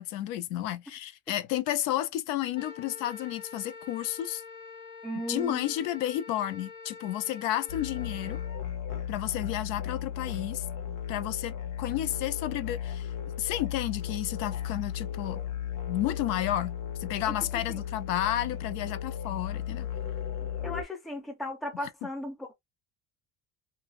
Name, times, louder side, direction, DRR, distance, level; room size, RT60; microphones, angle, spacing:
voice 1, 0.0-4.4 5.3-8.4 9.1-10.6 11.1-15.4 15.9-16.7 17.0-19.9, left 13 dB, 80° left, 0.6 m, -32 dB
Wind instrument woodwind instrument, 2.5-8.6, left 4 dB, 35° left, 0.7 m, -46 dB
voice 2, 5.0-5.6 17.3-17.8 20.6-22.5, left 1 dB, ahead, 0.4 m, -36 dB
sound 1, 7.7-20.8, left 9 dB, 65° left, 1.0 m, -35 dB
2.5 x 2.4 x 3.0 m
cardioid pair, 180°, 32 cm